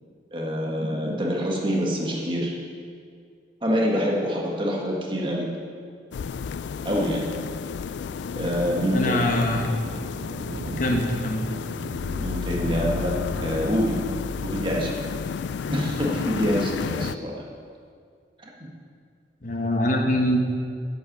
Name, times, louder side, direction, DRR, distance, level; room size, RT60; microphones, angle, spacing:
voice 1, 0.3-2.5 3.6-5.5 6.8-7.2 8.4-9.1 12.2-14.0 14.4-14.9 15.7-17.3 18.4-18.5, equal, 30° right, -2 dB, 1.6 m, -26 dB
sound 1, 6.1-17.1, left 6 dB, 85° left, 0.3 m, -32 dB
Thunder, 8.1-17.3, right 2 dB, 65° right, 0.7 m, -38 dB
voice 2, 8.9-9.7 10.8-11.4 19.4-20.4, left 1 dB, 45° left, 1 dB, 1.3 m, -23 dB
8.4 x 8.2 x 8.6 m, 2.2 s
head